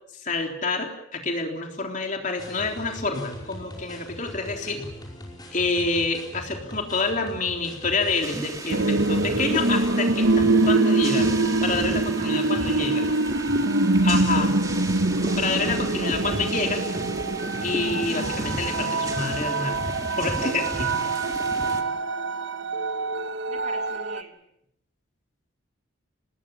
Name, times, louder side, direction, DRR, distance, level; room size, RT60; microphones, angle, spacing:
voice 1, 0.2-4.9 5.5-11.3 11.6-13.1 14.0-14.6 15.4-16.8 17.6-19.8 20.2-21.1, left 3 dB, 40° left, 3 dB, 3.6 m, -28 dB
sound 1, 2.4-10.7, left 1 dB, 20° left, 5.2 m, -42 dB
sound 2, 8.2-21.8, right 1 dB, 15° right, 1.9 m, -34 dB
sound 3, 8.7-24.2, right 2 dB, 60° right, 1.0 m, -24 dB
voice 2, 12.1-13.0 23.5-24.4, right 3 dB, 35° right, 2 dB, 4.0 m, -44 dB
26.5 x 20.0 x 7.2 m, 0.76 s
head